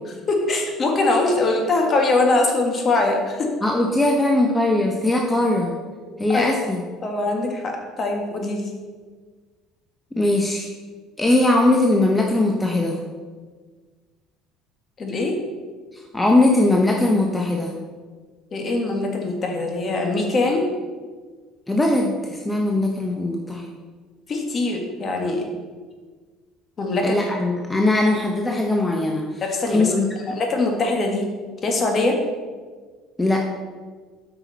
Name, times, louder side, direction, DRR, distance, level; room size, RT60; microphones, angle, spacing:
voice 1, 0.3-3.5 6.1-6.5 7.0-8.7 15.0-15.4 18.5-20.7 24.3-25.4 26.8-27.2 29.4-29.9 30.4-31.3 31.6-32.2, left 2 dB, 35° left, 2 dB, 1.6 m, -22 dB
voice 2, 3.6-5.7 6.2-6.8 10.2-10.7 11.2-13.0 15.9-17.7 21.7-23.6 27.0-29.4 29.7-30.4 33.2-33.5, left 2 dB, 10° left, 0 dB, 0.8 m, -20 dB
8.4 x 5.9 x 4.1 m, 1.5 s
supercardioid pair, 100°, 0 cm